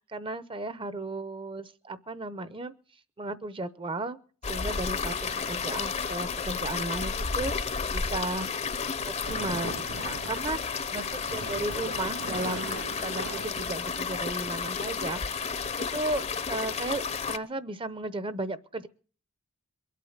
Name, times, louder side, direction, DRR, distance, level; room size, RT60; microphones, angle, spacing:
voice 1, 0.1-2.7 3.2-4.2 4.5-8.5 9.3-15.5 15.8-18.9, right 2 dB, 25° right, 0.7 m, -35 dB
sound 1, 4.4-17.4, left 5 dB, 30° left, 0.7 m, -32 dB
Fabric Rustling, 9.3-10.5 10.9-14.3, right 4 dB, 85° right, 0.8 m, -40 dB
22.5 x 8.4 x 7.2 m
head